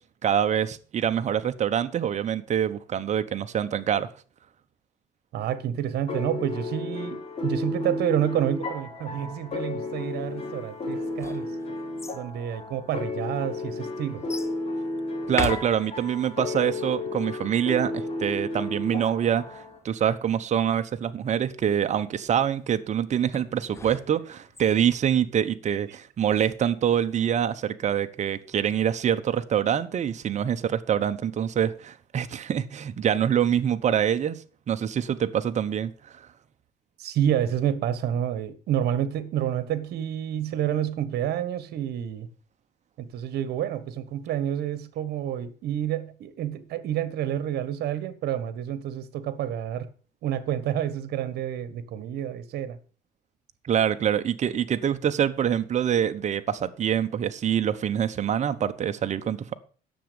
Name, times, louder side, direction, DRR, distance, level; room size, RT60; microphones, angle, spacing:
voice 1, 0.2-4.1 15.3-36.2 53.6-59.5, right 9 dB, 45° right, 1.0 m, -25 dB
voice 2, 5.3-11.5 12.1-14.2 37.0-42.3 43.0-49.9 50.2-52.8, right 10 dB, 70° right, 1.5 m, -29 dB
sound 1, 6.1-19.8, left 2 dB, 35° left, 5.0 m, -33 dB
sound 2, 10.9-12.2 13.0-13.1 14.3-14.6 15.2-16.3 23.3-24.6, left 3 dB, 15° left, 1.0 m, -36 dB
10.0 x 7.2 x 6.9 m
cardioid pair, 110°, 17 cm